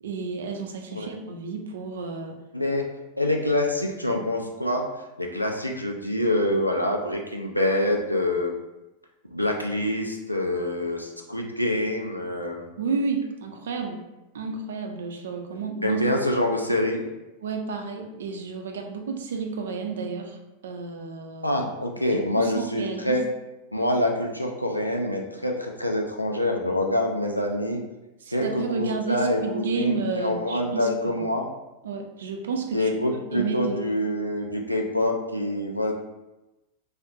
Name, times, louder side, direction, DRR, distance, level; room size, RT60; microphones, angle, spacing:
voice 1, 0.0-2.4 4.2-4.3 12.8-14.0 14.3-16.0 17.4-21.6 22.0-23.2 28.2-31.2 31.8-32.9 33.3-33.8, right 4 dB, 60° right, 4 dB, 0.3 m, -31 dB
voice 2, 2.5-2.9 3.2-4.9 5.2-8.5 9.3-12.7 15.8-17.0 21.4-23.2 23.7-27.8 28.3-31.5 32.7-35.9, left 1 dB, 90° left, 1 dB, 0.3 m, -26 dB
2.4 x 2.1 x 2.6 m, 1.0 s
figure-of-eight pair, 90°, 0 cm